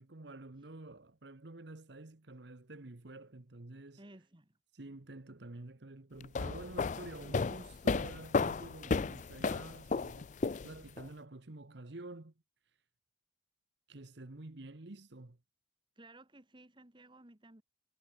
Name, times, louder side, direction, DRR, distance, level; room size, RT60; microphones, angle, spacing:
voice 1, 0.0-4.0 4.7-12.3 13.9-15.4, right 2 dB, 55° right, 1.1 m, -49 dB
voice 2, 4.0-4.6 15.9-17.6, right 2 dB, 25° right, 1.5 m, -57 dB
sound 1, 6.2-11.0, left 4 dB, 35° left, 0.4 m, -33 dB
head